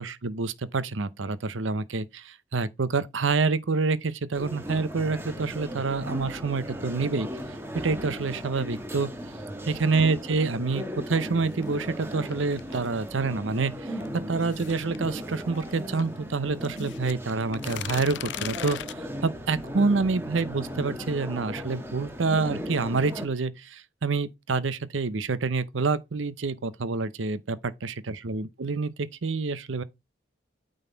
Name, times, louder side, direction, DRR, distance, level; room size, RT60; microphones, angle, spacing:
voice 1, 0.0-7.3 7.8-9.1 9.7-13.9 14.3-29.8, right 4 dB, 85° right, 0.7 m, -27 dB
sound 1, 4.3-23.3, equal, 10° right, 1.3 m, -37 dB
sound 2, 11.4-13.0 14.0-16.1 16.6-18.9, left 12 dB, 70° left, 0.3 m, -39 dB
9.2 x 4.0 x 3.9 m
head